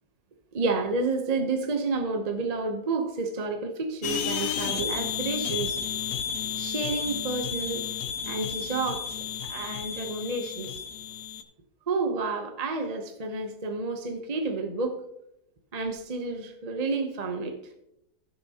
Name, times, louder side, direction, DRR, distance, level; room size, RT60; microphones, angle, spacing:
voice 1, 0.5-5.8 6.6-7.8 8.2-9.2 9.4-10.7 11.9-15.0 15.7-17.6, right 3 dB, 35° right, 5 dB, 0.7 m, -30 dB
sound 1, 4.0-11.4, left 8 dB, 65° left, 1.1 m, -32 dB
15.0 x 7.0 x 2.9 m, 0.80 s
omnidirectional pair, 1.8 m